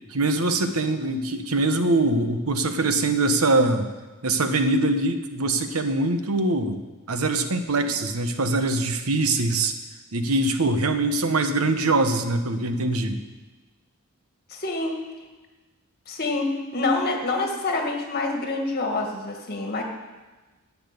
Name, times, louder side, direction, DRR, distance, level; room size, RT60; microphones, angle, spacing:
voice 1, 0.1-3.9 4.2-6.8 7.1-9.8 10.1-13.2, right 2 dB, 90° right, 8 dB, 1.1 m, -23 dB
voice 2, 14.5-15.0 16.1-19.8, left 2 dB, 45° left, 2 dB, 1.9 m, -26 dB
10.5 x 8.6 x 8.3 m, 1.2 s
head